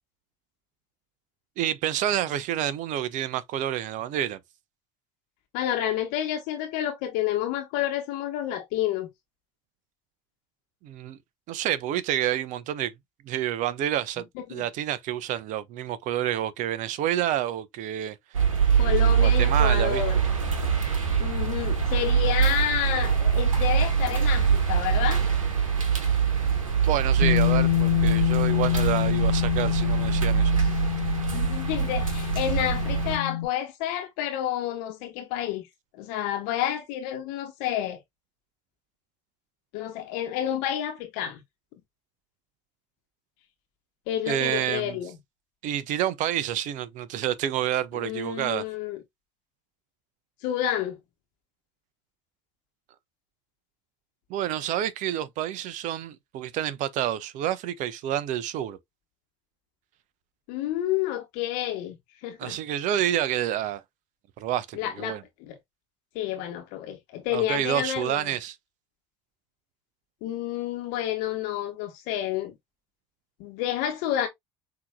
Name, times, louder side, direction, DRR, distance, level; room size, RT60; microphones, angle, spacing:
voice 1, 1.6-4.4 10.8-11.2 11.5-12.9 13.2-18.2 18.9-20.0 26.8-30.5 44.3-45.0 45.6-48.6 54.3-58.8 62.4-63.8 64.4-65.2 67.3-68.6, right 11 dB, 50° right, 0.7 m, -28 dB
voice 2, 5.5-9.1 14.4-14.6 18.8-20.2 21.2-25.2 31.3-35.6 36.0-38.0 39.7-41.4 44.1-45.1 48.0-49.0 50.4-51.0 60.5-62.0 62.2-62.6 64.7-65.6 66.1-68.2 70.2-72.5 73.4-74.3, left 11 dB, 55° left, 1.1 m, -29 dB
sound 1, 18.3-33.2, right 7 dB, 75° right, 1.2 m, -24 dB
Bass guitar, 27.2-33.5, left 13 dB, 75° left, 0.7 m, -26 dB
5.8 x 3.0 x 2.2 m
figure-of-eight pair, 70°, 17 cm